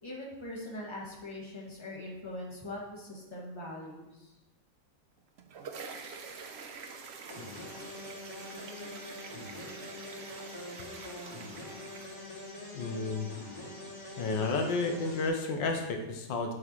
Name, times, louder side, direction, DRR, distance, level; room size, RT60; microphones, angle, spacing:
voice 1, 0.0-4.3, left 1 dB, 15° left, -5 dB, 2.0 m, -42 dB
sound 1, 5.2-12.7, right 5 dB, 70° right, 0.6 m, -47 dB
sound 2, 7.3-15.3, left 1 dB, 65° left, 3.6 m, -44 dB
voice 2, 12.7-13.3 14.2-16.5, left 3 dB, 85° left, 4 dB, 1.6 m, -31 dB
11.0 x 5.9 x 3.1 m, 0.98 s
omnidirectional pair, 2.0 m